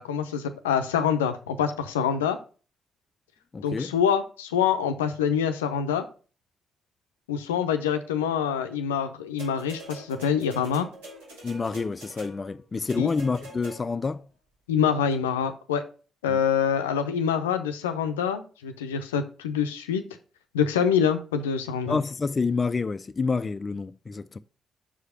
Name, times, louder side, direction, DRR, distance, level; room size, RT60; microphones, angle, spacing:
voice 1, 0.0-2.4 3.6-6.0 7.3-10.9 13.0-13.1 14.7-15.8 16.2-20.0 20.5-22.0, left 7 dB, 85° left, 0.5 m, -25 dB
voice 2, 3.5-3.9 11.4-14.2 16.3-16.4 21.9-24.4, left 4 dB, 35° left, 0.4 m, -28 dB
sound 1, 9.4-14.1 15.1-15.2, equal, 85° right, 4.0 m, -44 dB
5.7 x 4.9 x 5.6 m
hypercardioid pair, 45°, 0 cm